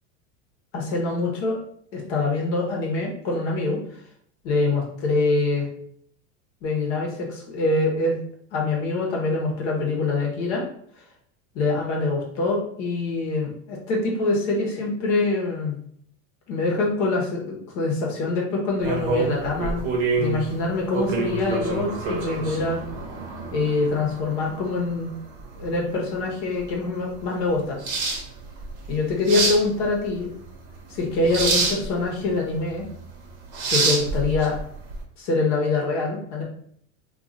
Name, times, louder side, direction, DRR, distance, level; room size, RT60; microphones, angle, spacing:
voice 1, 0.7-1.6 1.9-3.8 4.4-5.7 6.6-8.2 8.5-10.6 11.5-15.8 16.5-19.8 20.2-22.8 23.5-25.1 25.5-27.8 28.9-30.3 30.9-32.9 33.7-34.6 35.2-36.4, left 3 dB, 55° left, -1 dB, 1.1 m, -24 dB
sound 1, 18.8-35.0, right 3 dB, 40° right, 0.8 m, -28 dB
2.6 x 2.6 x 3.9 m, 0.64 s
supercardioid pair, 170°, 40 cm